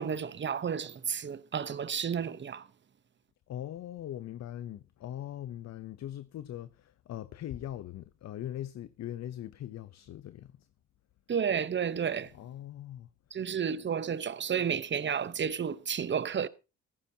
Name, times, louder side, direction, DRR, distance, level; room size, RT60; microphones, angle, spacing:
voice 1, 0.0-2.7 11.3-12.3 13.3-16.5, right 7 dB, 40° right, 0.9 m, -31 dB
voice 2, 3.5-10.7 12.3-13.4, left 12 dB, 60° left, 0.7 m, -41 dB
15.0 x 14.5 x 2.8 m
cardioid pair, 90°, 30 cm